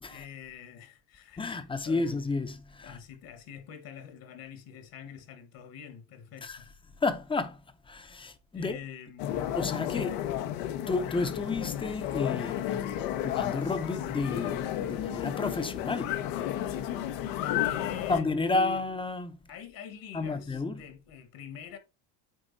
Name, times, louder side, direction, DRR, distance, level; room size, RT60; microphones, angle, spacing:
voice 1, 0.1-2.2 2.8-6.7 8.5-9.5 9.9-10.4 17.6-18.8 19.5-21.8, left 8 dB, 50° left, 1.5 m, -46 dB
voice 2, 1.4-3.0 6.4-6.6 7.0-8.8 9.5-10.1 10.9-12.9 13.2-16.2 18.1-19.4 20.1-20.8, left 3 dB, 10° left, 0.8 m, -31 dB
sound 1, 9.2-18.2, left 11 dB, 80° left, 1.2 m, -32 dB
9.2 x 3.8 x 4.0 m
cardioid pair, 125°, 44 cm